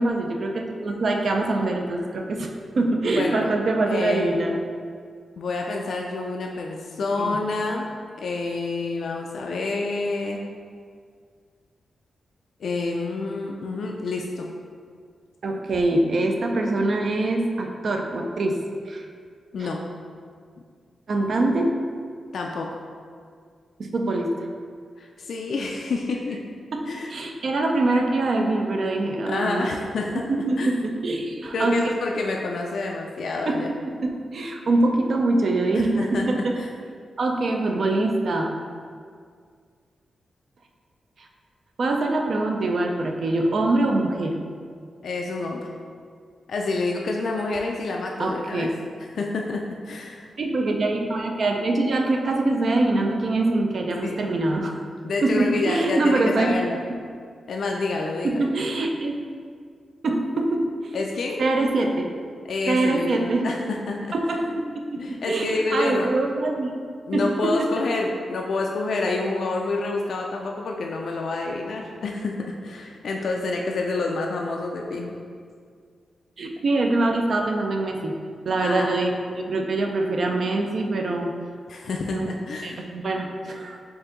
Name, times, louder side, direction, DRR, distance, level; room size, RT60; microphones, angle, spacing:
voice 1, 0.0-4.6 7.2-7.4 15.4-18.6 18.9-19.0 19.6-19.7 21.1-21.7 23.8-24.5 26.7-26.8 27.1-29.7 30.2-31.8 33.5-36.5 37.2-38.6 41.2-41.3 41.8-44.4 48.2-48.7 50.4-54.7 55.2-56.9 58.2-59.2 60.0-60.7 61.4-62.1 62.7-63.5 64.1-66.7 67.1-67.7 76.4-78.2 78.5-79.1 79.4-81.3 82.1-82.3 82.6-83.8, right 2 dB, 55° right, 2 dB, 0.4 m, -24 dB
voice 2, 3.2-3.5 3.9-4.3 5.4-7.9 8.2-10.4 12.6-14.5 19.5-19.8 22.3-22.7 25.0-26.4 26.9-27.1 29.3-30.2 30.6-30.7 31.5-33.8 35.7-36.7 45.0-45.7 46.5-48.7 49.0-50.3 54.0-54.2 55.0-56.8 57.5-58.5 60.9-61.4 62.5-64.1 65.0-66.1 67.1-75.2 78.6-79.0 81.7-82.8, left 3 dB, 70° left, 0 dB, 0.3 m, -28 dB
4.6 x 2.6 x 3.7 m, 2.1 s
wide cardioid pair, 105°, 0 cm